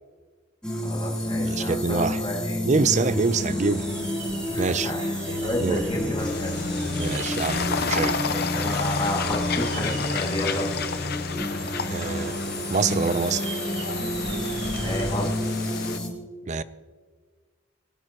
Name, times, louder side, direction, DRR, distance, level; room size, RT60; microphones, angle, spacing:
sound 1, 0.6-16.1, left 1 dB, 5° left, 3.3 m, -29 dB
voice 1, 0.8-2.6 4.5-5.0 5.4-6.5 8.2-10.6 14.5-15.6, left 1 dB, 25° left, -2 dB, 2.2 m, -31 dB
voice 2, 1.4-2.2 2.6-3.9 4.6-4.9 5.6-5.8 6.9-8.2 11.9-12.4 12.7-13.5 16.5-16.6, right 4 dB, 40° right, 15 dB, 0.5 m, -25 dB
sound 2, 3.5-15.3, right 3 dB, 65° right, 2.5 m, -40 dB
sound 3, 6.2-16.0, left 6 dB, 55° left, 0.7 m, -32 dB
25.0 x 13.5 x 3.0 m, 1.5 s
head